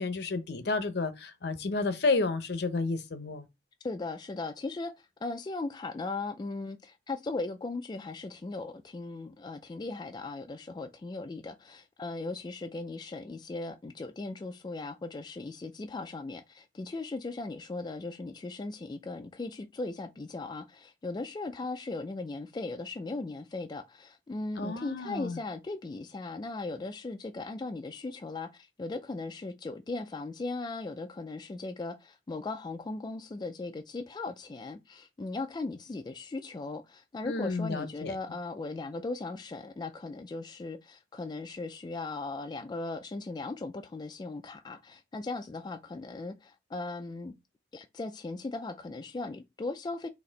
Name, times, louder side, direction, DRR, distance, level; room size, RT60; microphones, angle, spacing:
voice 1, 0.0-3.5 24.6-25.4 37.2-38.2, left 3 dB, 65° left, 0.7 m, -31 dB
voice 2, 3.8-47.3 47.7-50.1, left 3 dB, 25° left, 0.3 m, -38 dB
4.1 x 2.8 x 3.9 m
head